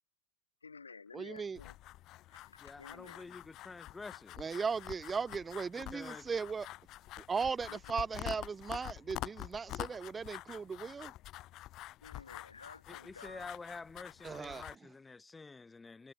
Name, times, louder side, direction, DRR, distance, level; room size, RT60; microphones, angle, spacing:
voice 1, 0.6-1.8 2.3-3.2 7.7-7.8 12.0-13.5, left 5 dB, 75° left, 4.5 m, -53 dB
voice 2, 1.1-1.6 4.4-6.7 7.3-11.1 14.2-14.6, right 5 dB, 15° right, 1.2 m, -37 dB
sound 1, 1.6-14.8, left 16 dB, 35° left, 2.8 m, -47 dB
voice 3, 2.6-4.4 5.8-6.3 12.9-16.1, left 4 dB, 10° left, 2.2 m, -49 dB
figure-of-eight pair, 90°, 0 cm